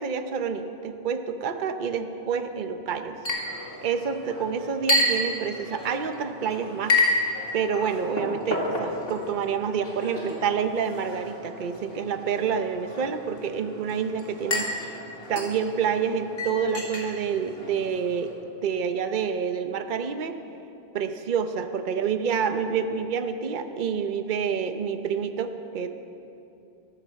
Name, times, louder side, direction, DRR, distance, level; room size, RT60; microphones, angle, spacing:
voice 1, 0.0-3.2 3.8-7.0 7.5-15.0 15.3-18.3 18.6-20.3 20.9-25.9, right 6 dB, 55° right, 8 dB, 0.9 m, -28 dB
Chink clink, 3.2-18.3, left 2 dB, 65° left, 2.6 m, -31 dB
13.5 x 13.0 x 7.5 m, 2.7 s
omnidirectional pair, 1.1 m